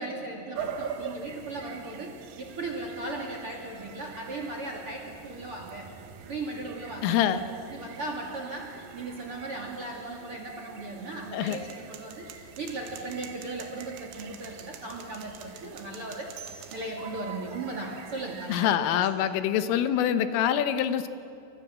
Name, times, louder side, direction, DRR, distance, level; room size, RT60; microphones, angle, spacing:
voice 1, 0.0-5.9 6.3-7.4 7.7-16.3 16.7-19.1, right 2 dB, 40° right, 2 dB, 2.2 m, -37 dB
sound 1, 0.5-18.8, right 6 dB, 65° right, 2.4 m, -44 dB
voice 2, 7.0-7.4 11.3-11.6 18.5-21.1, left 10 dB, 80° left, 11 dB, 3.6 m, -25 dB
sound 2, 11.5-16.9, right 9 dB, 80° right, 4.5 m, -48 dB
29.0 x 26.0 x 7.5 m, 2.6 s
omnidirectional pair, 5.9 m